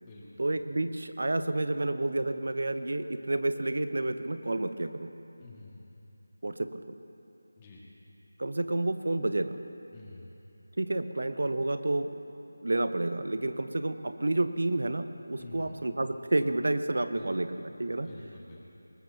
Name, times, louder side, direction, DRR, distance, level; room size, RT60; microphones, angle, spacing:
voice 1, 0.4-5.1 6.4-6.8 8.4-9.6 10.8-12.1 12.6-18.1, right 2 dB, 70° right, 10 dB, 0.9 m, -30 dB
voice 2, 5.4-5.9 7.6-7.8 9.9-10.4 15.4-15.8 17.1-17.3 18.0-18.6, left 3 dB, 20° left, -6 dB, 2.2 m, -49 dB
22.5 x 20.0 x 2.9 m, 2.9 s
figure-of-eight pair, 165°, 0 cm